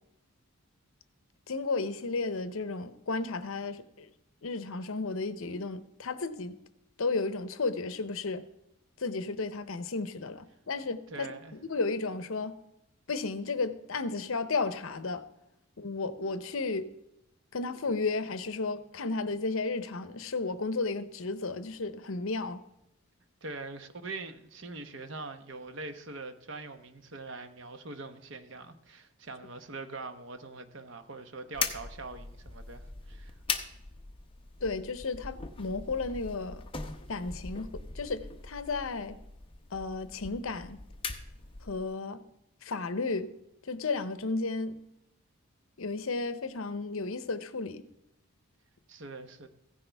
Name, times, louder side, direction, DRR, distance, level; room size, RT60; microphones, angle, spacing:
voice 1, 1.5-4.1 4.4-6.6 7.0-8.5 9.0-12.6 13.1-15.2 15.8-16.9 17.5-22.6 34.6-36.6 37.1-37.7 37.9-39.2 39.7-40.8 41.6-42.2 42.6-43.3 43.6-44.7 45.8-47.8, left 3 dB, 70° left, 12 dB, 0.7 m, -33 dB
voice 2, 11.1-11.5 23.4-33.3 48.9-49.5, right 3 dB, 55° right, 8 dB, 0.9 m, -43 dB
sound 1, 31.5-41.9, left 5 dB, 25° left, 0.8 m, -40 dB
15.5 x 10.0 x 3.4 m, 0.83 s
head